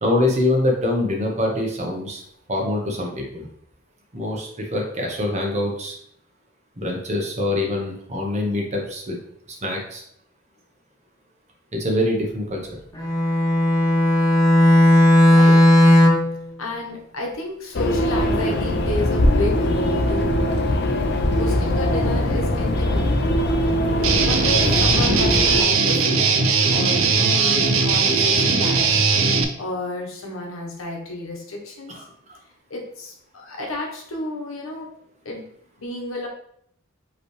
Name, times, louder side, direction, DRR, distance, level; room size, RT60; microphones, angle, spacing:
voice 1, 0.0-2.2 2.5-3.5 4.1-6.0 6.8-9.2 9.6-10.0 11.7-12.8 31.9-32.0 32.3-32.4, left 1 dB, 35° right, 1 dB, 0.9 m, -24 dB
Bowed string instrument, 13.0-16.4, left 1 dB, 20° left, 0.7 m, -15 dB
voice 2, 15.3-15.6 16.6-20.5 21.4-23.5 24.2-26.3 26.7-28.8 29.6-31.9 32.7-34.9 35.2-35.5 35.8-36.3, left 1 dB, 80° left, 0 dB, 1.2 m, -31 dB
sound 1, 17.7-25.6, left 1 dB, 50° left, 0.5 m, -21 dB
Guitar, 24.0-29.4, right 4 dB, 75° right, 0.5 m, -19 dB
5.3 x 3.1 x 3.2 m, 0.69 s
head